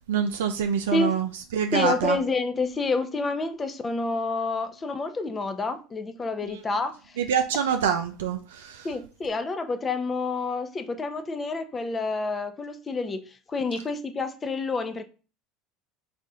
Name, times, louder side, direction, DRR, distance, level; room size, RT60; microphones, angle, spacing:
voice 1, 0.1-2.2 7.2-8.9, right 8 dB, 85° right, 0.4 m, -26 dB
voice 2, 0.9-1.2 1.7-7.2 8.8-15.0, left 3 dB, 30° left, 0.7 m, -29 dB
4.2 x 2.4 x 3.7 m
hypercardioid pair, 80°, 0 cm